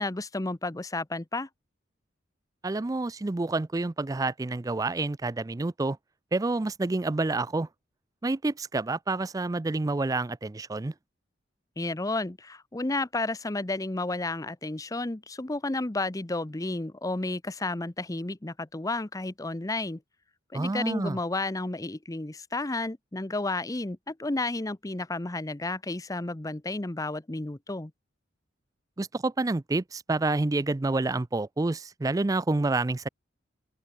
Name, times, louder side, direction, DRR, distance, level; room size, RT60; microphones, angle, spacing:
voice 1, 0.0-1.5 11.8-20.0 20.5-27.9, left 2 dB, 20° left, 0.7 m, -32 dB
voice 2, 2.6-6.0 6.3-7.7 8.2-10.9 20.5-21.2 29.0-33.1, right 2 dB, 20° right, 0.4 m, -28 dB
open air
head